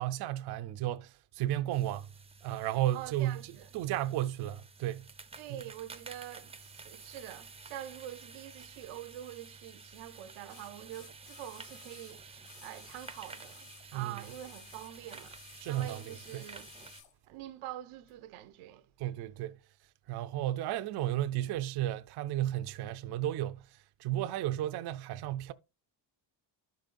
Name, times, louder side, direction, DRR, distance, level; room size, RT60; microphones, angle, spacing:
voice 1, 0.0-2.1 2.4-3.4 3.7-5.0 13.9-14.2 15.6-16.4 19.0-19.6 20.1-25.5, right 13 dB, 55° right, 0.5 m, -33 dB
sound 1, 1.7-17.0, right 4 dB, 15° right, 0.5 m, -52 dB
voice 2, 2.9-3.7 5.4-16.7 17.3-18.9, right 12 dB, 85° right, 0.8 m, -45 dB
sound 2, 8.9-9.0 10.5-13.9 14.2-17.1 18.1-18.2, left 8 dB, 65° left, 2.0 m, -56 dB
13.0 x 5.3 x 2.5 m
cardioid pair, 125°, 48 cm